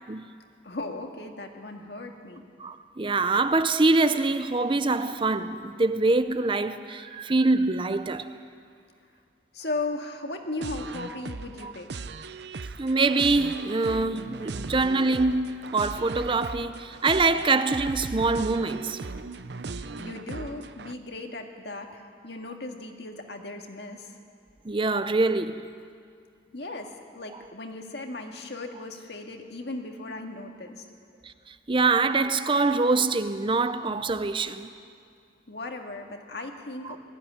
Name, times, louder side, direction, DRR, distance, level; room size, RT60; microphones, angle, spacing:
voice 1, 0.6-2.4 9.5-12.1 19.7-24.1 26.5-30.9 35.5-37.0, left 2 dB, 65° left, 2.0 m, -37 dB
voice 2, 2.6-8.3 11.6-11.7 12.8-19.1 24.6-25.7 31.2-34.7 36.8-37.0, right 3 dB, 30° right, 0.6 m, -24 dB
sound 1, 10.6-20.9, right 3 dB, 70° right, 0.7 m, -38 dB
20.0 x 15.0 x 9.9 m
head